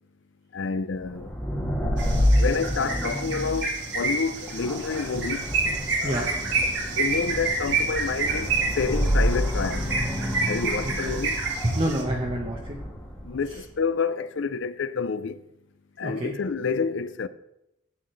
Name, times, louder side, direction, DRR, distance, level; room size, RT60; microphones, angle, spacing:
voice 1, 0.5-1.3 2.4-5.5 6.0-6.2 6.9-9.9 10.5-11.4 13.2-15.4 16.0-17.3, left 5 dB, 65° left, 0.5 m, -28 dB
sound 1, 1.0-13.6, equal, 10° left, 1.4 m, -28 dB
sound 2, 2.0-12.0, right 4 dB, 55° right, 1.8 m, -29 dB
voice 2, 10.8-11.2 11.6-12.8 16.0-16.3, right 1 dB, 30° right, 1.0 m, -28 dB
14.0 x 8.5 x 3.2 m
head